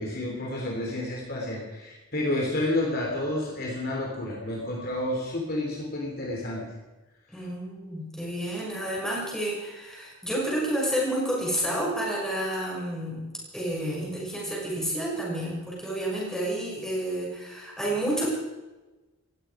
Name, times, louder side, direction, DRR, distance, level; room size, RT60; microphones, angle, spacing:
voice 1, 0.0-6.7, left 1 dB, 45° left, -1 dB, 3.5 m, -30 dB
voice 2, 7.3-13.2 13.5-18.3, right 1 dB, ahead, -4 dB, 6.4 m, -30 dB
18.5 x 15.5 x 5.1 m, 1.1 s
head